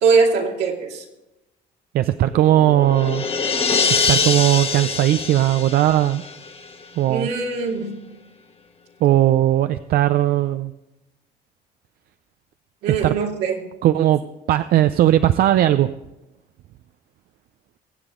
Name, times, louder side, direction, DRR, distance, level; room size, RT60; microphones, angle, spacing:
voice 1, 0.0-1.0 7.1-7.9 12.8-13.6, right 5 dB, 85° right, 0 dB, 2.6 m, -21 dB
voice 2, 1.9-3.2 3.9-6.2 7.0-7.3 9.0-10.7 12.9-13.1 13.8-14.2 14.5-15.9, right 13 dB, 65° right, 11 dB, 0.5 m, -18 dB
sound 1, 2.2-6.8, left 5 dB, 35° left, 1.3 m, -24 dB
22.5 x 8.2 x 3.8 m, 0.96 s
cardioid pair, 110°, 17 cm